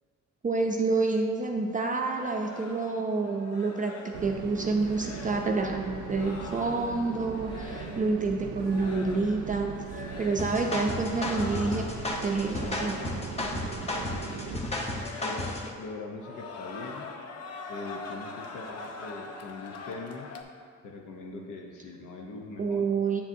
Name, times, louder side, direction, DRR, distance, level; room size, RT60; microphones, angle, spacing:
voice 1, 0.4-11.8 12.2-13.0 22.6-23.2, right 3 dB, 25° right, 2 dB, 0.5 m, -28 dB
sound 1, 2.0-8.2 8.6-9.5 9.8-10.6 11.1-13.4 13.7-14.6 14.9-15.9 16.2-20.4, left 4 dB, 55° left, 0.6 m, -44 dB
sound 2, 4.1-14.6, right 7 dB, 75° right, 0.5 m, -39 dB
sound 3, 10.4-15.7, left 2 dB, 20° left, 0.8 m, -33 dB
voice 2, 14.2-15.5 15.8-17.1 17.7-20.3 20.8-22.9, left 3 dB, 85° left, 1 dB, 0.8 m, -42 dB
7.3 x 7.0 x 2.6 m, 2.2 s
cardioid pair, 90°, 30 cm